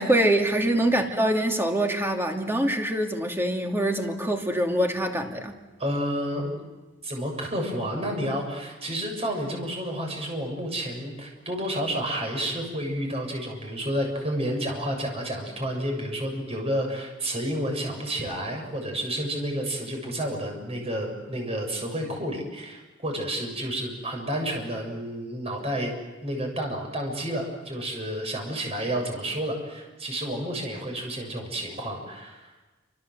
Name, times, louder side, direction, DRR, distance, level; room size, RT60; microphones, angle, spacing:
voice 1, 0.0-5.5, right 1 dB, 10° right, 3 dB, 2.7 m, -24 dB
voice 2, 5.8-6.6 7.0-25.9 26.2-32.5, equal, 30° right, 2 dB, 7.2 m, -30 dB
28.5 x 26.5 x 7.9 m, 1.2 s
head